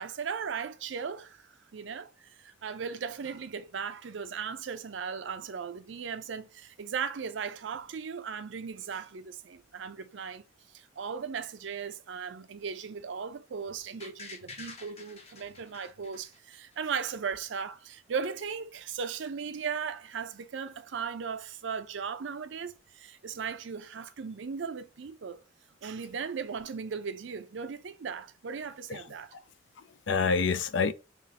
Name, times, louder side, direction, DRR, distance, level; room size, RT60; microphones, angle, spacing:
voice 1, 0.0-25.4 25.8-29.3, right 6 dB, 70° right, 0.5 m, -37 dB
sound 1, 14.0-16.9 17.3-17.4, left 3 dB, 35° left, 0.9 m, -48 dB
voice 2, 28.9-29.4 29.8-30.9, left 5 dB, 65° left, 0.5 m, -29 dB
5.5 x 2.9 x 2.8 m
head